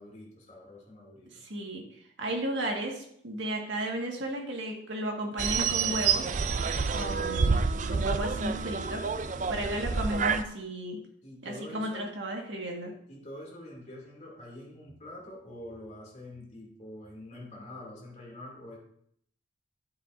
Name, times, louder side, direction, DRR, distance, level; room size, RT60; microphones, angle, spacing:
voice 1, 0.0-1.4 9.3-9.7 11.2-12.1 13.1-18.8, left 1 dB, 35° left, -3 dB, 2.6 m, -46 dB
voice 2, 1.4-1.8 2.2-6.2 6.9-7.6 7.9-9.0 9.5-11.0 11.4-12.9, right 1 dB, 70° right, 0 dB, 1.7 m, -34 dB
sound 1, 5.4-10.4, right 5 dB, 40° right, 0.4 m, -28 dB
9.4 x 7.8 x 2.6 m, 0.69 s
head